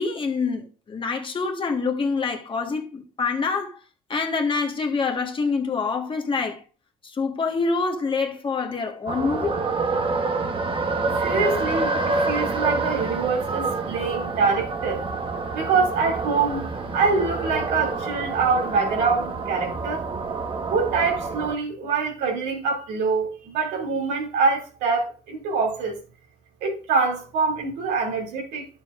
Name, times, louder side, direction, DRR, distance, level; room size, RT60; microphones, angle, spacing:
voice 1, 0.0-3.8 4.1-6.6 7.0-9.6, left 4 dB, 30° left, 1.5 m, -26 dB
sound 1, 9.1-21.5, right 3 dB, 30° right, 1.1 m, -27 dB
voice 2, 11.2-15.0 15.5-20.0 20.7-26.0 26.6-28.7, right 4 dB, 85° right, 2.6 m, -25 dB
11.5 x 6.9 x 2.5 m
cardioid pair, 110°, 17 cm